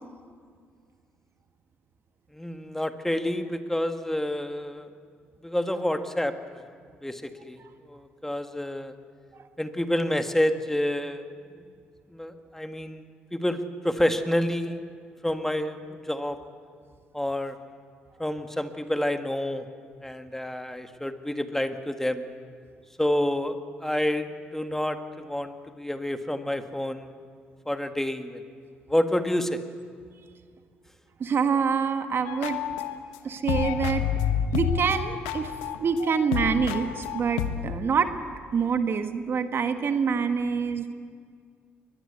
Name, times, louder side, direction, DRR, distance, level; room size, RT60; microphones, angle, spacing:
voice 1, 2.3-4.9 5.4-6.6 7.0-7.6 7.9-8.9 9.6-11.3 12.1-13.1 13.3-14.8 15.2-16.4 17.1-17.6 18.2-19.7 20.0-22.2 23.0-27.1 27.7-28.4 28.9-29.6, left 1 dB, 5° left, 7 dB, 1.9 m, -28 dB
voice 2, 31.2-32.6 33.2-34.1 34.5-35.5 35.8-38.1 38.5-40.9, right 6 dB, 50° right, 8 dB, 1.5 m, -26 dB
sound 1, 32.3-33.2 33.5-37.9, left 9 dB, 80° left, 1.2 m, -29 dB
22.5 x 21.0 x 8.2 m, 2.1 s
hypercardioid pair, 50°, 5 cm